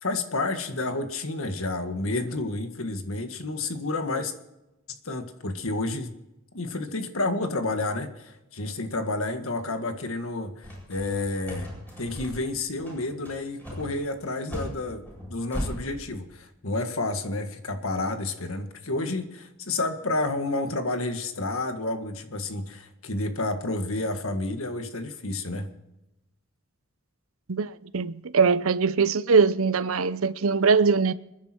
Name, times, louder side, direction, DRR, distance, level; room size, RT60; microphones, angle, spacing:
voice 1, 0.0-4.3 5.0-6.1 6.5-11.7 12.0-15.0 15.3-25.7, left 2 dB, 75° left, 1.7 m, -30 dB
sound 1, 10.6-15.7, equal, 10° left, 7.9 m, -37 dB
voice 2, 27.5-31.1, right 5 dB, 80° right, 0.7 m, -22 dB
26.5 x 10.5 x 4.5 m
head